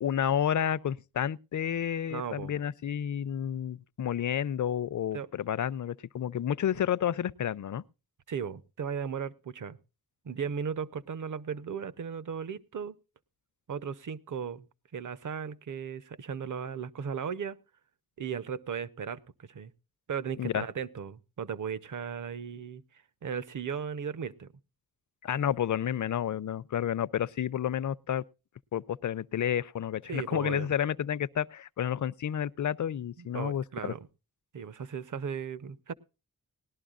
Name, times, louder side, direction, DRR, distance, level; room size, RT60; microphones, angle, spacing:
voice 1, 0.0-7.8 20.4-20.6 25.2-28.2 28.7-33.9, left 9 dB, 55° left, 0.5 m, -30 dB
voice 2, 2.1-2.5 5.1-5.3 8.3-9.8 10.2-13.0 13.7-14.7 14.9-17.6 18.2-19.7 20.1-22.8 23.2-24.5 30.1-30.7 33.2-34.0 34.5-35.9, right 7 dB, 60° right, 0.8 m, -36 dB
19.0 x 12.0 x 2.4 m
wide cardioid pair, 135°, 36 cm